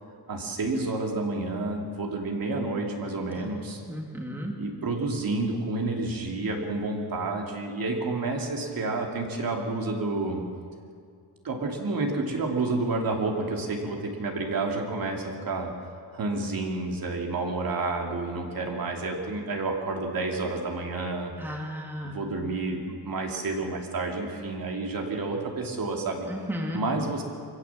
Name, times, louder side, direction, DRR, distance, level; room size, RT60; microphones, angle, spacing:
voice 1, 0.3-3.8 4.6-10.4 11.4-15.7 16.1-21.3 22.1-26.3 26.7-27.2, right 3 dB, 55° right, 1 dB, 2.8 m, -30 dB
voice 2, 3.9-4.5 21.4-22.2 26.3-26.8, equal, 5° right, 0 dB, 2.1 m, -34 dB
24.5 x 16.0 x 7.5 m, 2.2 s
wide cardioid pair, 175°, 42 cm